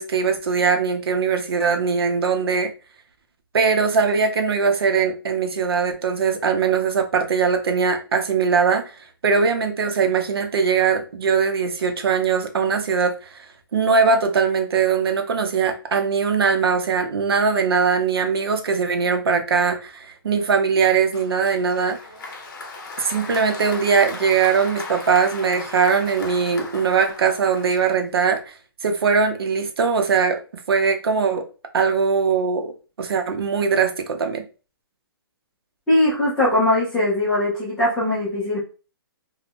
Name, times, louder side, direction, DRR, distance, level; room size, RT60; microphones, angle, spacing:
voice 1, 0.0-2.7 3.5-8.9 9.2-13.4 13.7-22.0 23.0-28.5 28.8-30.4 30.7-31.4 31.7-32.7 33.0-34.4, right 5 dB, 80° right, 6 dB, 0.6 m, -21 dB
Applause, 21.1-28.2, left 3 dB, 50° left, 0.8 m, -37 dB
voice 2, 35.9-38.6, left 1 dB, 5° left, -7 dB, 0.5 m, -20 dB
2.4 x 2.2 x 3.5 m, 0.34 s
hypercardioid pair, 175°, 13 cm